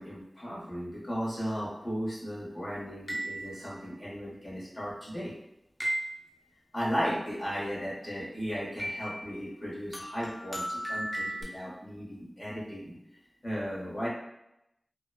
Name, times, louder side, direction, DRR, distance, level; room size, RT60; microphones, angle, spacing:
voice 1, 0.0-5.3 6.7-13.0 13.4-14.1, equal, 40° left, -8 dB, 1.1 m, -35 dB
sound 1, 3.1-3.9 5.8-6.5 8.8-9.4 9.9-11.4, right 1 dB, 25° left, 0.6 m, -35 dB
2.9 x 2.1 x 2.3 m, 0.84 s
wide cardioid pair, 60°, 0 cm